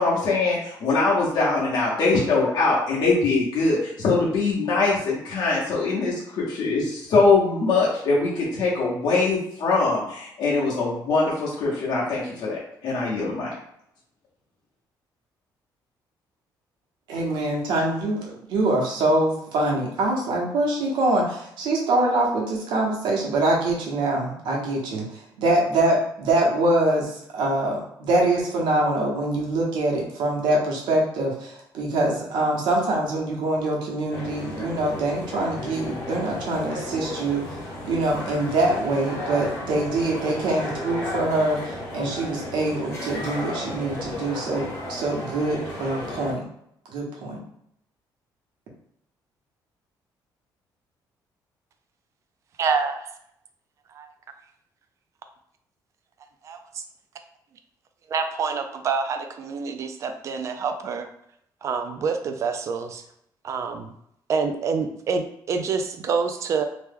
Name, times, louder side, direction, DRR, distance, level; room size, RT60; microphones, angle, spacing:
voice 1, 0.0-13.5, left 3 dB, 60° left, -6 dB, 1.0 m, -22 dB
voice 2, 17.1-25.0 25.4-37.4 37.9-41.6 41.9-46.4 46.9-47.4, right 2 dB, 80° right, -2 dB, 1.0 m, -24 dB
sound 1, 34.1-46.3, left 1 dB, 35° left, 0.8 m, -34 dB
voice 3, 52.6-53.0 53.9-54.1 56.4-56.8 58.1-61.1 61.6-63.0 63.4-63.9 64.3-66.6, right 5 dB, 40° right, 7 dB, 0.3 m, -27 dB
2.9 x 2.2 x 3.4 m, 0.73 s
cardioid pair, 175°, 8 cm